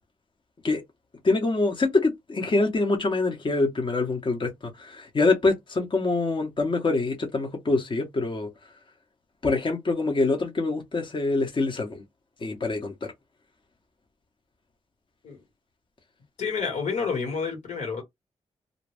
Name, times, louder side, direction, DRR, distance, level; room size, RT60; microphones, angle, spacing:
voice 1, 1.2-8.5 9.4-12.0 12.4-12.9, left 3 dB, 45° left, 0.9 m, -25 dB
voice 2, 16.4-18.0, left 5 dB, 85° left, 1.6 m, -29 dB
2.6 x 2.2 x 3.3 m
cardioid pair, 65°, 12 cm